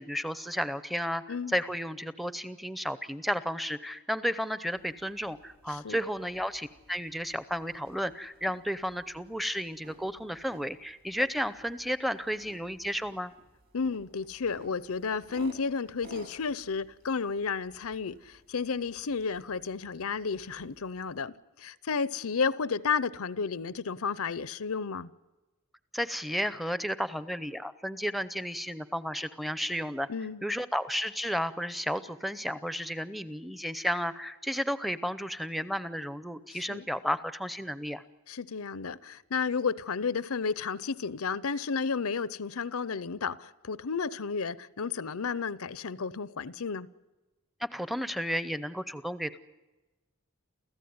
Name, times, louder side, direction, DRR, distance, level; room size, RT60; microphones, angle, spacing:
voice 1, 0.0-13.3 25.9-30.1 30.4-38.0 47.6-49.4, equal, ahead, 0.7 m, -33 dB
sound 1, 4.7-21.2, right 1 dB, 45° right, 2.9 m, -57 dB
voice 2, 13.7-25.1 30.1-30.4 36.5-36.9 38.3-46.9, left 5 dB, 75° left, 0.7 m, -32 dB
29.0 x 15.0 x 9.6 m
head